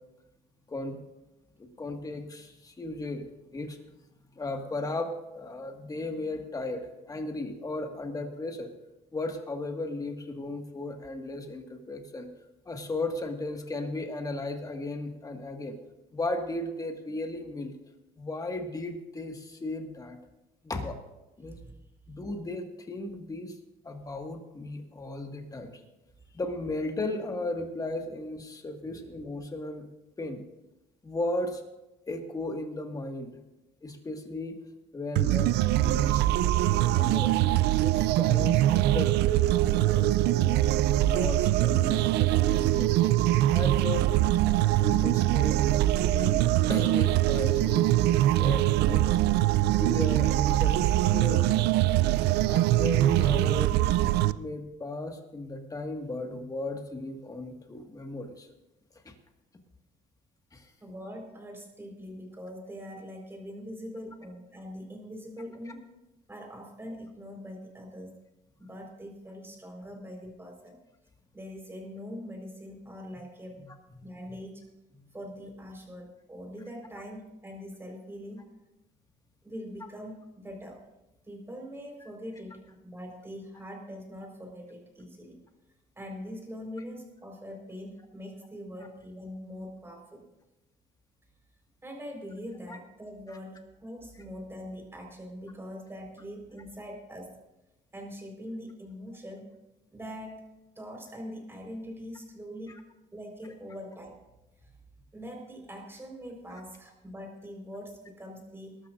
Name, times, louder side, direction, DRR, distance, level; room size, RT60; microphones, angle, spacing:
voice 1, 1.6-3.3 3.5-3.8 4.3-8.7 9.1-12.3 12.7-15.8 16.1-17.7 18.2-20.2 20.6-21.0 21.4-21.6 22.1-23.6 23.8-25.8 26.3-29.8 30.2-30.4 31.0-31.6 32.1-33.4 33.8-34.6 34.9-36.2 36.9-39.1 39.9-40.6 41.0-43.2 43.5-44.1 44.8-49.1 49.8-51.7 52.5-53.7 54.3-58.5 59.1-59.2 60.5-60.7 92.7-92.8 93.3-93.4, left 2 dB, 20° left, 4 dB, 1.8 m, -35 dB
sound 1, 35.1-54.3, right 14 dB, 80° right, 0.4 m, -23 dB
voice 2, 60.8-65.8 66.3-68.1 68.6-70.8 71.3-73.6 74.0-74.6 75.1-78.5 79.4-80.8 81.3-85.4 86.0-90.2 91.8-97.3 97.9-99.5 99.9-100.4 100.8-102.7 103.1-104.2 105.1-108.8, equal, 15° right, 1 dB, 4.6 m, -42 dB
20.5 x 13.0 x 2.6 m, 0.97 s
cardioid pair, 110°, 17 cm